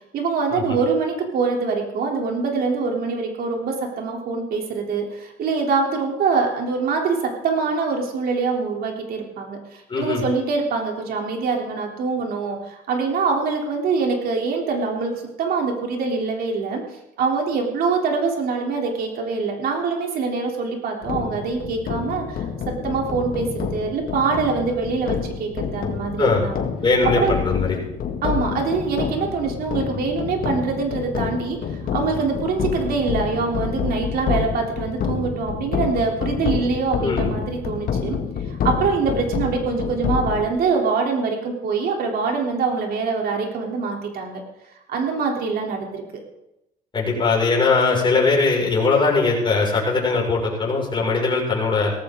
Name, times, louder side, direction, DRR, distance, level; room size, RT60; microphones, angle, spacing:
voice 1, 0.1-16.8 17.2-26.7 27.0-27.4 28.2-38.2 38.5-44.4 44.9-46.0, right 4 dB, 65° right, 1 dB, 3.5 m, -24 dB
voice 2, 9.9-10.2 26.2-26.4 26.8-27.8 37.0-37.3 46.9-51.9, left 4 dB, 30° left, -3 dB, 5.9 m, -20 dB
sound 1, 21.0-40.4, left 7 dB, 60° left, 2.1 m, -28 dB
17.5 x 14.5 x 3.9 m, 0.90 s
cardioid pair, 110°, 17 cm